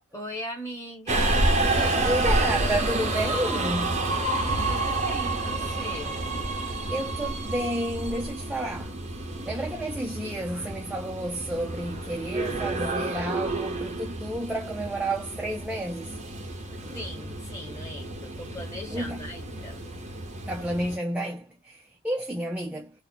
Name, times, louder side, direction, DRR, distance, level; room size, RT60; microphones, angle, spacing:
voice 1, 0.1-2.2 4.6-6.2 16.9-19.8, left 1 dB, 15° left, 1.4 m, -39 dB
Subway metro underground, 1.1-21.0, right 2 dB, 30° right, 0.8 m, -29 dB
voice 2, 2.0-4.0 6.9-8.9 9.5-16.2 18.9-19.2 20.5-22.9, right 1 dB, 5° right, 0.3 m, -31 dB
2.8 x 2.1 x 4.0 m
head